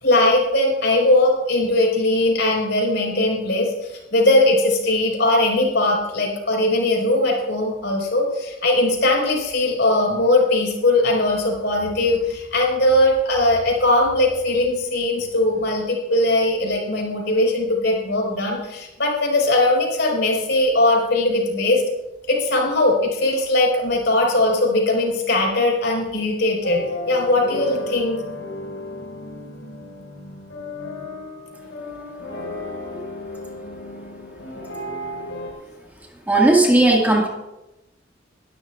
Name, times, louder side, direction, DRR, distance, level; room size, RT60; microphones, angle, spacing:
voice 1, 0.0-21.8 22.3-28.2, left 2 dB, 65° left, -1 dB, 4.8 m, -20 dB
sound 1, 26.6-35.5, left 1 dB, 85° left, 5.0 m, -34 dB
voice 2, 36.3-37.3, right 2 dB, 10° right, -2 dB, 1.9 m, -15 dB
22.5 x 12.5 x 2.4 m, 0.96 s
head